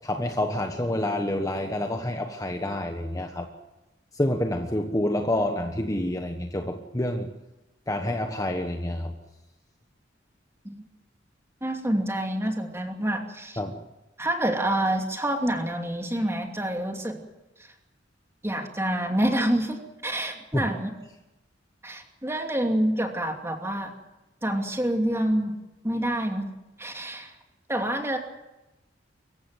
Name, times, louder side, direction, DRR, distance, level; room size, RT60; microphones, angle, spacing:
voice 1, 0.0-3.5 4.2-7.3 7.9-9.1 13.6-13.8 20.5-20.7, left 1 dB, 20° left, 5 dB, 1.3 m, -28 dB
voice 2, 11.6-13.6 14.2-17.2 18.4-20.9 21.8-23.9 24.4-25.5 25.8-26.5 26.8-27.3 27.7-28.2, right 1 dB, 15° right, 3 dB, 2.7 m, -27 dB
24.5 x 15.0 x 9.1 m, 0.99 s
head